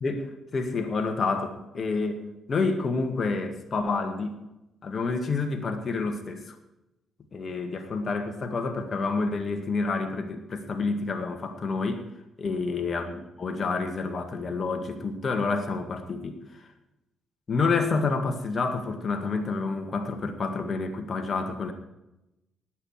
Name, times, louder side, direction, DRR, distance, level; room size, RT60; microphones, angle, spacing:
voice 1, 0.0-2.2 2.5-4.4 4.8-6.6 7.3-12.1 12.4-16.7 17.5-21.7, left 4 dB, 45° left, 7 dB, 1.8 m, -29 dB
18.5 x 7.6 x 4.8 m, 0.93 s
hypercardioid pair, 45°, 0 cm